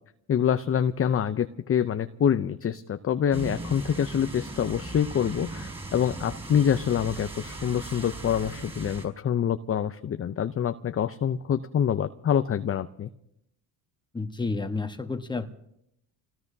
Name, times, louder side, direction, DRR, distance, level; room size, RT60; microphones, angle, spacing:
voice 1, 0.3-13.1, left 8 dB, 30° left, 10 dB, 0.6 m, -26 dB
sound 1, 3.3-9.1, right 2 dB, 10° right, 5.3 m, -38 dB
voice 2, 14.1-15.5, left 3 dB, 10° left, 7 dB, 1.2 m, -30 dB
28.0 x 18.5 x 2.8 m, 0.78 s
supercardioid pair, 75°, 47 cm